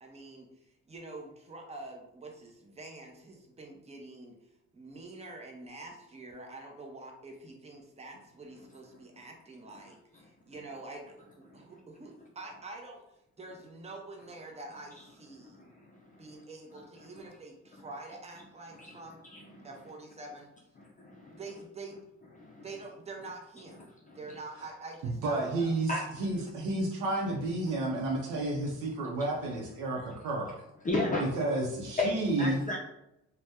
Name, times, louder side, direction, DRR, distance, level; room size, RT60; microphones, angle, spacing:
voice 1, 0.0-4.4 4.7-13.0 13.4-15.6 16.1-19.2 19.6-20.5 21.3-22.0 22.6-23.9 24.1-25.7, right 2 dB, 20° right, 1 dB, 0.7 m, -46 dB
voice 2, 19.3-19.7 20.8-21.4 22.4-22.6 24.1-24.2 25.9-26.0 30.8-31.3 32.0-32.8, left 2 dB, 25° left, -2 dB, 0.5 m, -33 dB
voice 3, 25.0-30.5 31.2-32.6, right 2 dB, 80° right, -1 dB, 0.7 m, -31 dB
2.7 x 2.2 x 3.4 m, 0.85 s
cardioid pair, 90°, 30 cm